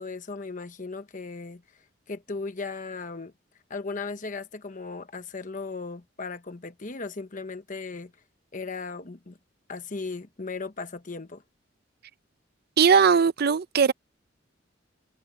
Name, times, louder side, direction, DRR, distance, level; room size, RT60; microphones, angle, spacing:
voice 1, 0.0-1.6 2.1-3.3 3.7-8.1 8.5-9.4 9.7-11.4, left 4 dB, 40° left, 1.1 m, -36 dB
voice 2, 12.8-13.9, right 6 dB, 55° right, 0.6 m, -19 dB
head